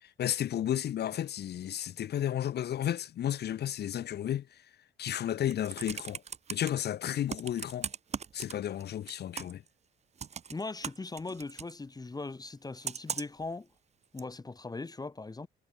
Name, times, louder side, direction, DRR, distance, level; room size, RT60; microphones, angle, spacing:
voice 1, 0.0-4.6 5.0-6.2 6.5-7.9 8.3-9.6, left 11 dB, 55° left, 0.7 m, -33 dB
Computer keyboard, 5.3-6.7 7.3-8.8 9.1-9.7 10.2-11.7 12.8-13.4 14.2-14.3, right 7 dB, 35° right, 0.6 m, -38 dB
voice 2, 10.5-13.7 14.1-15.5, left 3 dB, 20° left, 1.0 m, -39 dB
cardioid pair, 90°, 20 cm